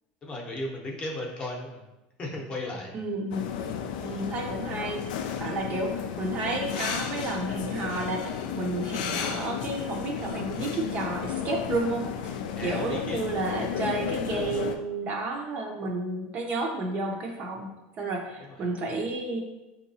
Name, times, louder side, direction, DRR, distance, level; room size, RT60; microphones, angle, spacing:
voice 1, 0.2-1.8 2.2-3.0 12.6-13.2 18.4-18.6, left 1 dB, 25° left, -1 dB, 0.7 m, -35 dB
voice 2, 2.9-3.5 4.0-5.0 5.4-12.3 12.6-17.7 18.0-19.4, right 2 dB, 35° right, 1 dB, 0.5 m, -31 dB
sound 1, 3.3-14.8, left 8 dB, 80° left, 0.3 m, -33 dB
4.5 x 2.8 x 2.7 m, 1.0 s
supercardioid pair, 140°, 4 cm